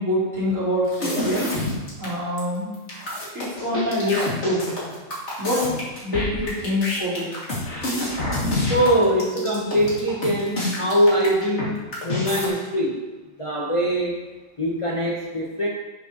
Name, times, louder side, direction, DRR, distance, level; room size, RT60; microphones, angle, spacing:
voice 1, 0.0-1.6 2.0-2.7 3.3-4.8 5.4-5.8 6.0-7.3, left 1 dB, 65° right, -9 dB, 3.9 m, -25 dB
sound 1, 0.9-2.1 2.4-2.5 2.7-11.7 11.9-12.5, left 1 dB, 55° left, 2.6 m, -27 dB
voice 2, 8.7-13.0 13.4-14.2 14.6-15.7, equal, 25° left, -3 dB, 0.9 m, -22 dB
10.0 x 8.2 x 3.0 m, 1.1 s
omnidirectional pair, 1.4 m